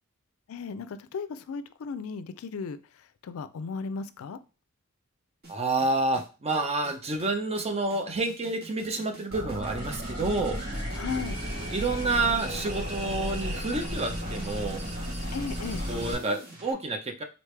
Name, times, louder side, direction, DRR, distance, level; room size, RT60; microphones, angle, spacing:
voice 1, 0.5-4.4 10.9-11.4 15.3-15.8, left 5 dB, 70° left, 13 dB, 0.4 m, -36 dB
sound 1, 5.4-16.7, right 1 dB, 45° right, 1.7 m, -46 dB
voice 2, 5.5-10.6 11.7-14.8 15.9-17.2, right 3 dB, 30° right, 5 dB, 0.6 m, -29 dB
sound 2, 9.3-16.1, equal, 75° right, 2.5 m, -34 dB
4.0 x 3.2 x 3.2 m, 0.32 s
head